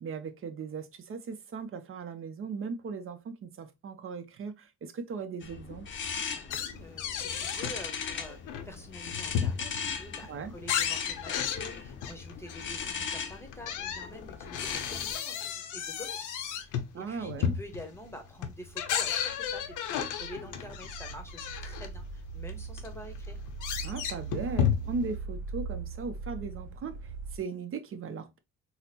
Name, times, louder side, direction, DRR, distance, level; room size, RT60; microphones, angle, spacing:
voice 1, 0.0-5.9 10.3-10.5 16.9-17.5 23.8-28.4, right 5 dB, 45° right, 0.6 m, -38 dB
sound 1, 5.4-15.1, left 6 dB, 40° left, 0.6 m, -39 dB
voice 2, 6.4-23.4, left 1 dB, 10° left, 0.9 m, -47 dB
sound 2, 6.5-7.8 8.2-9.9 10.3-12.9 13.5-21.9 22.5-22.6 22.8-25.1, left 8 dB, 80° left, 0.6 m, -33 dB
sound 3, 15.8-16.0 16.6-16.7 17.2-17.8 18.0-27.4, right 4 dB, 85° right, 0.7 m, -41 dB
3.9 x 2.0 x 2.7 m
cardioid pair, 90°, 30 cm